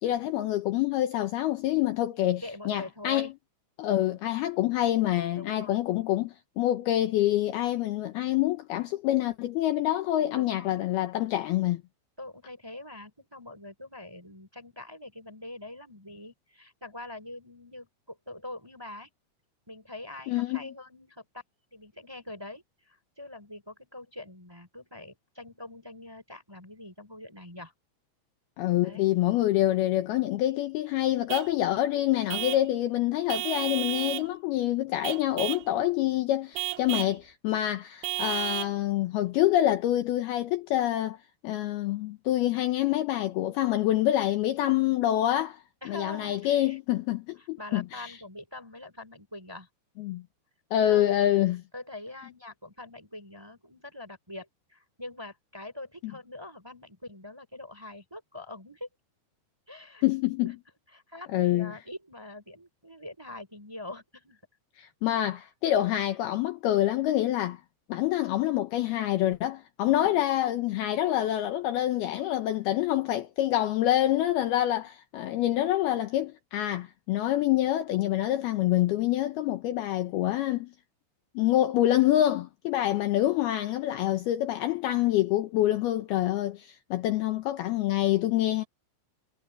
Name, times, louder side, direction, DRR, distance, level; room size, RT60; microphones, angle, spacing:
voice 1, 0.0-3.3 3.8-11.8 20.3-20.7 28.6-41.2 41.4-45.6 45.9-48.1 50.0-50.2 50.7-51.6 60.0-60.5 61.3-61.7 64.8-67.6 67.9-80.7 81.4-88.6, left 13 dB, 75° left, 2.6 m, -26 dB
voice 2, 2.4-3.3 5.3-5.8 10.3-10.8 12.2-19.1 19.7-21.4 21.7-27.7 28.8-29.1 32.8-32.9 45.8-46.8 47.4-49.7 50.9-51.2 51.7-58.9 59.7-60.0 60.4-60.5 60.9-64.4 70.0-70.2 74.5-74.9, left 2 dB, 5° right, 3.0 m, -44 dB
Vehicle horn car horn honking / Truck, 31.3-31.6 32.3-32.7 33.3-34.3 35.0-35.7 36.6-37.2 38.0-38.8, right 18 dB, 85° right, 3.0 m, -32 dB
omnidirectional pair, 5.1 m